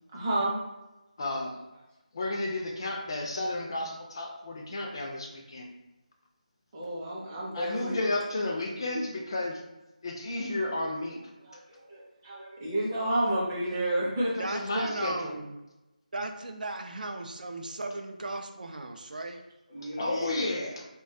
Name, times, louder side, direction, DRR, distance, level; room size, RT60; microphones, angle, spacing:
voice 1, 0.1-0.5 6.7-8.0 11.4-14.3 19.7-20.4, right 1 dB, 20° right, -5 dB, 0.5 m, -31 dB
voice 2, 1.2-1.6 2.1-5.7 7.5-9.6 10.0-11.3 14.3-15.4 19.8-20.9, left 2 dB, 35° left, 1 dB, 0.3 m, -32 dB
voice 3, 14.4-15.5 16.1-19.4, right 2 dB, 75° right, 5 dB, 0.4 m, -36 dB
3.2 x 2.2 x 2.6 m, 1.0 s
figure-of-eight pair, 170°, 5 cm